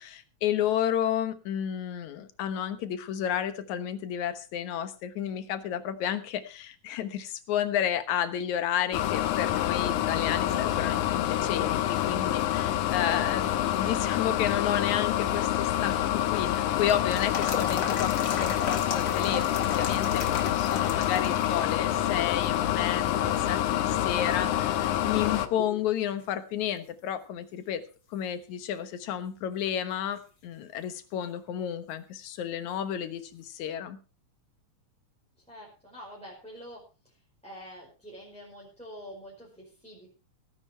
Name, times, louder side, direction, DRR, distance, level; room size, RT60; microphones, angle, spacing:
voice 1, 0.0-27.8 28.1-34.0, left 10 dB, 75° left, 11 dB, 2.5 m, -31 dB
sound 1, 8.9-25.5, left 12 dB, 90° left, 2.5 m, -27 dB
sound 2, 15.7-21.8 22.2-22.3 23.1-23.6 24.1-24.2 24.7-25.9 26.2-26.3 29.7-29.8 32.7-32.8, left 5 dB, 40° left, 2.5 m, -37 dB
voice 2, 35.5-37.1 37.4-40.1, equal, ahead, -4 dB, 4.9 m, -46 dB
17.5 x 10.0 x 4.5 m, 0.34 s
omnidirectional pair, 3.5 m